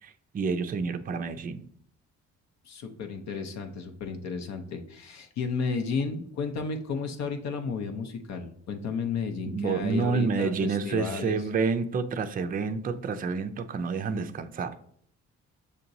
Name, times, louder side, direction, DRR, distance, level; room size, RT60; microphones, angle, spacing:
voice 1, 0.0-1.6 9.5-14.7, right 5 dB, 30° right, 9 dB, 0.4 m, -29 dB
voice 2, 2.6-11.4, left 5 dB, 65° left, 6 dB, 0.6 m, -33 dB
6.6 x 2.9 x 2.6 m, 0.65 s
cardioid pair, 90°, 30 cm